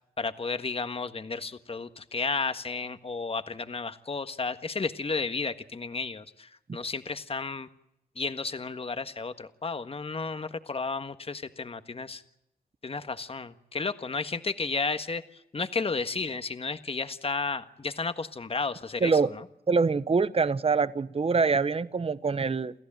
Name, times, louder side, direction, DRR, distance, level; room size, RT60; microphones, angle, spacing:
voice 1, 0.2-7.7 8.1-12.2 12.8-19.4, left 4 dB, 40° left, 10 dB, 1.6 m, -33 dB
voice 2, 19.7-22.7, right 4 dB, 40° right, 15 dB, 1.0 m, -25 dB
29.0 x 14.0 x 8.9 m, 0.82 s
cardioid pair, 70°, 16 cm